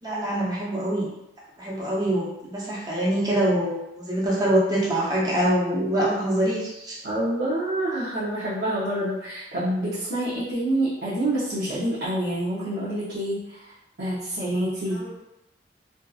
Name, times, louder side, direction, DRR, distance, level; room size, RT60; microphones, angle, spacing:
voice 1, 0.0-1.1 1.6-7.0 14.9-15.1, right 1 dB, 20° right, -6 dB, 0.7 m, -24 dB
voice 2, 7.0-13.4 14.0-15.0, right 1 dB, 75° right, -10 dB, 0.7 m, -27 dB
2.6 x 2.4 x 2.3 m, 0.89 s
head